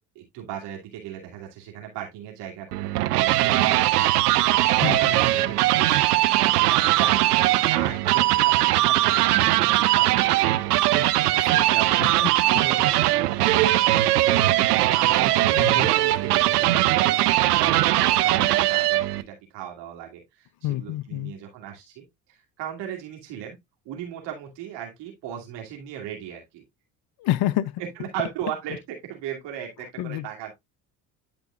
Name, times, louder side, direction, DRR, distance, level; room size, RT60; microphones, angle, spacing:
voice 1, 0.1-4.0 4.7-10.7 11.7-14.3 14.8-20.5 20.8-23.6 23.8-26.6 28.1-30.5, right 10 dB, 65° right, 2.6 m, -36 dB
sound 1, 2.7-19.2, right 16 dB, 90° right, 0.7 m, -20 dB
voice 2, 11.2-11.7 12.0-12.3 15.5-15.9 20.6-21.3 27.2-27.8 30.0-30.3, left 14 dB, 55° left, 0.7 m, -28 dB
11.5 x 5.1 x 2.4 m
hypercardioid pair, 60°, 45 cm